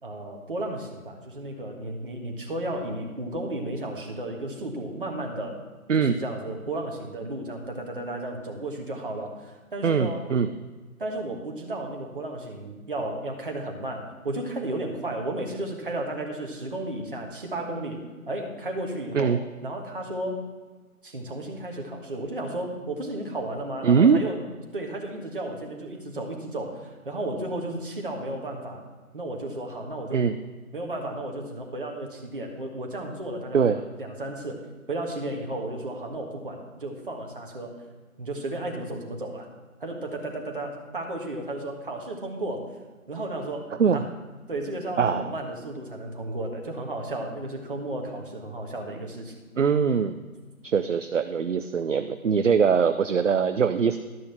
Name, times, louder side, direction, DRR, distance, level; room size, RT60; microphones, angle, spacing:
voice 1, 0.0-5.6 6.0-10.2 11.0-20.4 21.0-24.4 24.7-28.8 29.1-30.2 30.7-34.6 34.9-37.8 38.2-39.5 39.8-42.8 43.1-44.0 44.5-49.3, right 1 dB, 35° right, 1 dB, 1.5 m, -33 dB
voice 2, 9.8-10.5 19.1-19.4 23.8-24.2 30.1-30.4 33.5-33.8 43.7-44.0 45.0-45.3 49.6-50.2 50.6-54.0, right 6 dB, 60° right, 9 dB, 0.5 m, -22 dB
12.5 x 6.3 x 5.8 m, 1.3 s
figure-of-eight pair, 170°, 44 cm